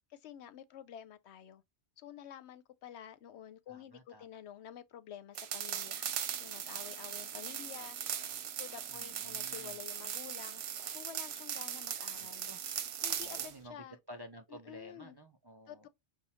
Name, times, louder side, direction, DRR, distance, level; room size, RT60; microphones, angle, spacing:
voice 1, 0.1-1.6 2.0-6.1 6.3-8.3 8.6-10.6 10.9-12.5 13.0-14.0 14.5-15.2 15.7-15.9, left 10 dB, 75° left, 0.9 m, -50 dB
voice 2, 3.7-4.3 8.9-9.8 12.2-12.7 13.2-15.9, equal, 35° right, 0.4 m, -52 dB
sound 1, 5.3-13.5, right 9 dB, 70° right, 0.9 m, -39 dB
5.5 x 2.3 x 2.9 m
omnidirectional pair, 1.2 m